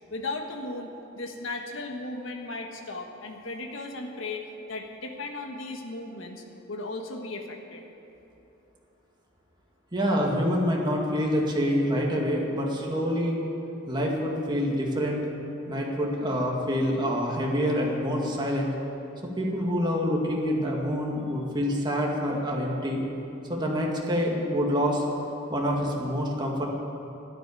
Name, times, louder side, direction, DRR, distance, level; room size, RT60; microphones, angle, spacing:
voice 1, 0.1-7.8, left 2 dB, 70° left, 3 dB, 1.4 m, -36 dB
voice 2, 9.9-13.4 13.9-15.2 15.7-18.7 19.4-23.0 23.5-25.0 25.5-26.7, equal, 20° right, -2 dB, 2.1 m, -26 dB
12.5 x 10.0 x 9.6 m, 2.9 s
head